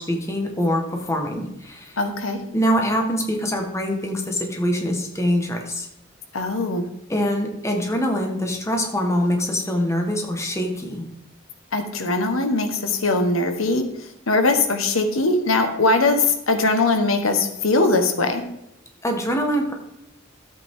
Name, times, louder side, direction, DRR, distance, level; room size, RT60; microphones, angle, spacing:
voice 1, 0.0-2.0 2.5-5.9 7.1-11.0 19.0-19.7, equal, 15° left, 2 dB, 1.4 m, -24 dB
voice 2, 2.0-2.4 6.3-6.9 11.7-13.8 14.3-18.4, left 2 dB, 90° left, 6 dB, 1.4 m, -21 dB
12.5 x 8.2 x 3.7 m, 0.85 s
head